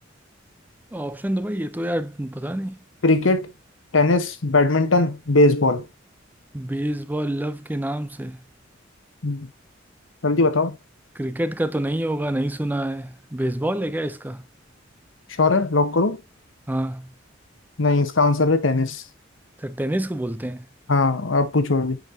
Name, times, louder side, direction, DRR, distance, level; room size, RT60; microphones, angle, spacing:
voice 1, 0.9-2.8 6.5-8.4 11.2-14.4 16.7-17.1 19.6-20.7, right 1 dB, 10° right, 0.5 m, -27 dB
voice 2, 3.0-3.5 3.9-5.8 9.2-9.5 10.2-10.8 15.4-16.2 17.8-19.0 20.9-22.0, left 2 dB, 85° left, 1.1 m, -19 dB
8.0 x 5.4 x 2.7 m
head